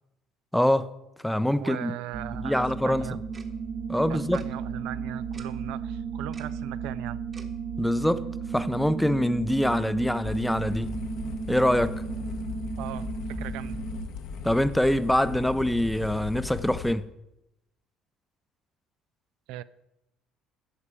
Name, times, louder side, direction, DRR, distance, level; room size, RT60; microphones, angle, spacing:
voice 1, 0.5-0.9 1.2-1.9 2.4-3.1 3.9-4.4 7.8-8.2 8.5-10.9 11.5-11.9 14.4-17.1, left 1 dB, 5° left, 0.5 m, -24 dB
voice 2, 1.6-3.2 4.1-7.2 12.8-13.8 19.5-19.6, right 13 dB, 80° right, 0.4 m, -38 dB
sound 1, 2.1-14.1, right 5 dB, 55° right, 1.1 m, -34 dB
Tick-tock, 3.3-3.5 4.3-4.5 5.3-5.5 6.3-6.5 7.3-7.5, right 4 dB, 30° right, 1.2 m, -48 dB
sound 2, 10.2-16.9, left 6 dB, 70° left, 1.0 m, -38 dB
11.0 x 7.3 x 4.9 m
cardioid pair, 105°, 0 cm